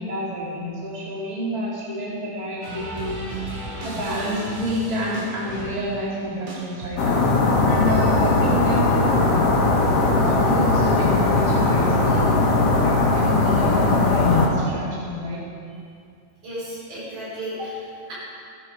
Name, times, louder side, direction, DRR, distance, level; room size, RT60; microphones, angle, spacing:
voice 1, 0.0-3.5 3.8-7.2 7.7-9.7 10.2-15.4, equal, 15° right, -6 dB, 2.2 m, -29 dB
sound 1, 2.6-7.3, right 1 dB, 55° right, 3.1 m, -35 dB
sound 2, 7.0-14.5, left 3 dB, 55° left, 2.3 m, -19 dB
voice 2, 16.4-18.1, equal, 75° right, -7 dB, 5.5 m, -33 dB
15.0 x 11.0 x 4.8 m, 2.4 s
omnidirectional pair, 3.6 m